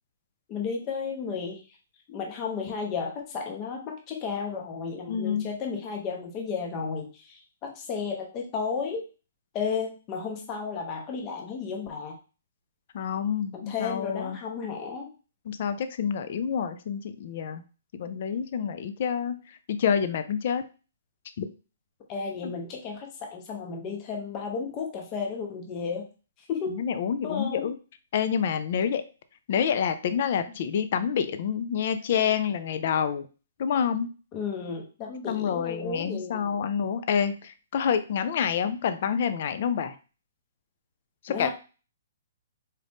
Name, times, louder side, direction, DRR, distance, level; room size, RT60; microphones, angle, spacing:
voice 1, 0.5-1.6 2.1-9.1 9.5-12.1 13.5-15.1 22.1-26.1 26.5-26.8 27.2-27.7 34.3-36.6 41.3-41.5, left 5 dB, 25° left, 1 dB, 0.8 m, -33 dB
voice 2, 5.1-5.5 12.9-14.4 15.5-17.6 17.9-20.6 21.4-21.5 22.4-22.5 26.7-27.7 28.1-29.0 29.5-33.3 33.6-34.1 35.3-39.9 41.2-41.5, left 7 dB, 50° left, 11 dB, 0.4 m, -28 dB
4.1 x 2.5 x 3.4 m, 0.33 s
hypercardioid pair, 160°, 0 cm